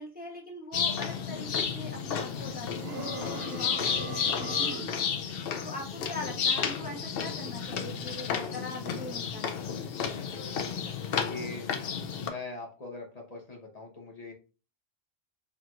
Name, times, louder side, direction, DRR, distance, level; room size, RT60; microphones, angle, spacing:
voice 1, 0.0-5.1 5.6-9.8, left 1 dB, 10° right, -2 dB, 0.7 m, -42 dB
sound 1, 0.7-12.3, left 7 dB, 65° left, 0.8 m, -32 dB
sound 2, 2.8-5.0, right 6 dB, 80° right, 0.9 m, -41 dB
voice 2, 10.1-10.6 11.1-11.7 12.2-14.3, left 3 dB, 40° left, 0 dB, 1.0 m, -42 dB
4.4 x 3.7 x 2.4 m, 0.34 s
omnidirectional pair, 1.1 m